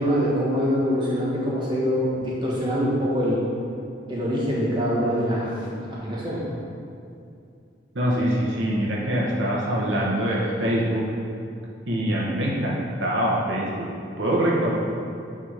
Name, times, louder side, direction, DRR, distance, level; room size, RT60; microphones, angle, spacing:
voice 1, 0.0-3.4 4.1-6.4, equal, 25° right, -6 dB, 1.6 m, -24 dB
voice 2, 7.9-11.0 11.9-13.9 14.2-14.7, right 1 dB, 80° right, -4 dB, 1.1 m, -24 dB
8.8 x 3.6 x 5.0 m, 2.5 s
head